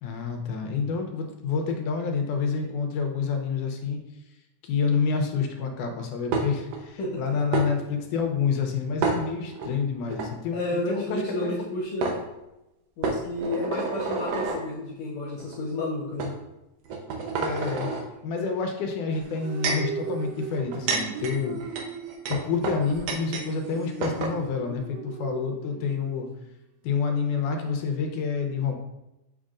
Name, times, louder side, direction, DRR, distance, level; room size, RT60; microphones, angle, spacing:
voice 1, 0.0-4.0 4.6-11.2 17.4-17.9 18.2-21.6 22.3-26.3 26.8-28.7, left 5 dB, 85° left, 4 dB, 2.2 m, -28 dB
sound 1, 6.3-6.8 7.5-7.7 9.0-9.7 10.1-10.3 11.6-11.7 12.0-12.2 13.0-14.6 15.4-15.6 16.2-16.3 16.9-18.0 19.1-19.9 20.6-23.5 23.7-23.8 24.0-24.4, right 4 dB, 70° right, 1.7 m, -29 dB
voice 2, 10.5-12.2 13.0-16.3, left 1 dB, 65° left, -4 dB, 2.0 m, -31 dB
sound 2, 19.2-26.3, right 6 dB, 90° right, 1.4 m, -38 dB
7.4 x 6.0 x 2.5 m, 0.94 s
omnidirectional pair, 3.7 m